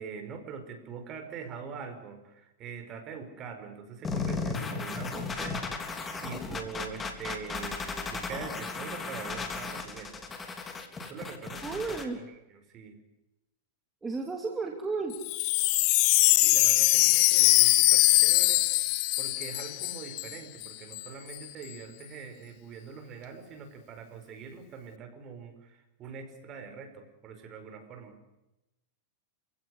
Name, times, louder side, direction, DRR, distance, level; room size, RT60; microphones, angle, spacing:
voice 1, 0.0-5.7 6.2-10.2 11.0-12.0 12.7-13.0 16.4-18.6 19.2-28.2, right 6 dB, 35° right, 7 dB, 5.3 m, -43 dB
sound 1, 4.0-12.0, left 4 dB, 15° left, 3.5 m, -35 dB
voice 2, 11.6-12.2 14.0-15.2, right 4 dB, 10° right, 1 dB, 2.9 m, -33 dB
Wind chime, 15.1-20.4 20.6-20.7 20.9-21.4, left 22 dB, 50° left, 1.0 m, -22 dB
29.0 x 17.0 x 9.7 m, 0.94 s
supercardioid pair, 140°, 0 cm